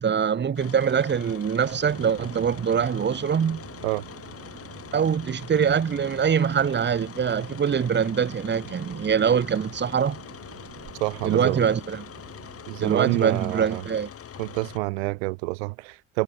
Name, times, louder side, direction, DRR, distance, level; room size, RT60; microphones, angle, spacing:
voice 1, 0.0-3.6 4.9-10.2 11.2-12.1 12.8-14.1, right 7 dB, 30° right, 1.1 m, -23 dB
sound 1, 0.6-14.8, left 8 dB, 40° left, 1.9 m, -43 dB
sound 2, 1.9-13.0, right 13 dB, 55° right, 3.2 m, -46 dB
voice 2, 11.0-11.6 12.7-13.8 14.4-16.2, right 26 dB, 70° right, 0.6 m, -28 dB
figure-of-eight pair, 45°, 34 cm